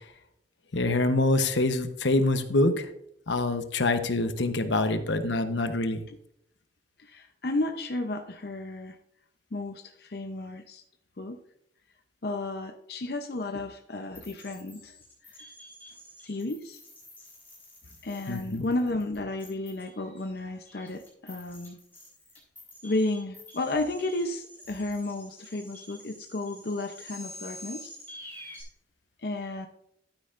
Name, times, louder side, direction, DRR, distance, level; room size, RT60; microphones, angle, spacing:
voice 1, 0.7-2.9 3.3-6.0 18.3-18.7, left 2 dB, 80° left, 9 dB, 1.0 m, -25 dB
voice 2, 7.0-9.0 9.5-10.8 11.2-11.4 12.2-14.9 15.4-15.5 16.2-16.8 18.0-21.8 22.8-28.0 29.2-29.7, left 2 dB, 55° left, 5 dB, 0.7 m, -33 dB
sound 1, 14.1-28.6, left 1 dB, 10° left, 4.3 m, -48 dB
12.0 x 9.8 x 2.5 m, 0.74 s
head